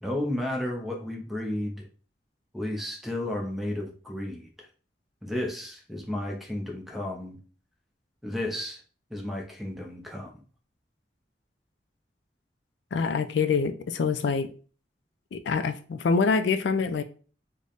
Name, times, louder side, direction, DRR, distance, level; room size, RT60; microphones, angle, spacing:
voice 1, 0.0-1.9 2.5-4.7 5.2-7.4 8.2-8.8 9.1-10.4, left 1 dB, ahead, 0.7 m, -33 dB
voice 2, 12.9-14.5 15.3-17.0, left 5 dB, 80° left, 0.4 m, -25 dB
3.3 x 2.2 x 3.9 m
head